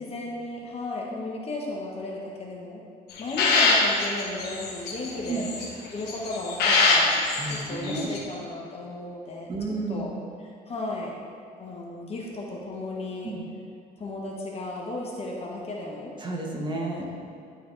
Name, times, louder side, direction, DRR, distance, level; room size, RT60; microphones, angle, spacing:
voice 1, 0.0-2.8 3.2-5.5 5.9-7.2 7.5-9.5 9.9-10.1 10.7-11.1 11.6-13.3 14.0-16.1, left 2 dB, 35° left, -2 dB, 1.1 m, -34 dB
sound 1, 3.1-5.7 6.1-7.6 7.8-8.2, left 4 dB, 70° left, 1.2 m, -24 dB
voice 2, 7.3-8.1 9.5-10.2 13.2-13.5 16.2-17.0, right 2 dB, 30° right, -1 dB, 1.3 m, -31 dB
11.5 x 4.0 x 3.2 m, 2.6 s
cardioid pair, 110°, 17 cm